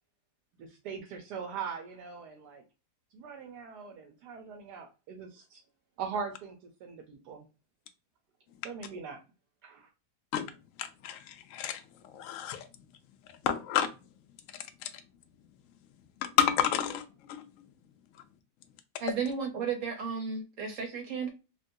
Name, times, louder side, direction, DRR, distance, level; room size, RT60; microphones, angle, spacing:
voice 1, 0.6-2.6 3.1-5.6 6.0-6.6 6.8-7.5 8.6-9.2 9.6-9.9, right 6 dB, 80° right, 1.2 m, -41 dB
voice 2, 10.8-11.8 12.1-12.7 13.4-13.9 16.2-17.5, left 10 dB, 70° left, 0.7 m, -30 dB
voice 3, 19.0-21.3, right 6 dB, 60° right, 1.0 m, -33 dB
3.7 x 2.1 x 2.6 m
omnidirectional pair, 1.8 m